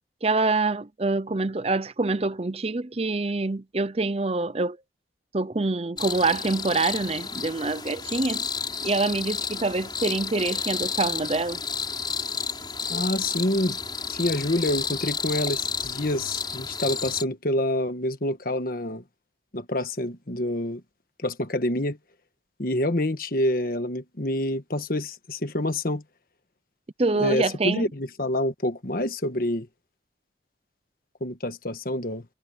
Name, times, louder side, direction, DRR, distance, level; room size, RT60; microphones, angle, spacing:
voice 1, 0.2-4.8 5.3-8.5 8.8-11.6 27.0-27.9, right 3 dB, 35° right, 0.7 m, -25 dB
sound 1, 6.0-17.2, left 6 dB, 25° left, 5.2 m, -31 dB
voice 2, 12.9-13.8 14.1-19.0 19.5-20.8 21.2-22.0 22.6-26.0 27.1-29.7 31.2-32.2, left 1 dB, 50° left, 1.5 m, -27 dB
head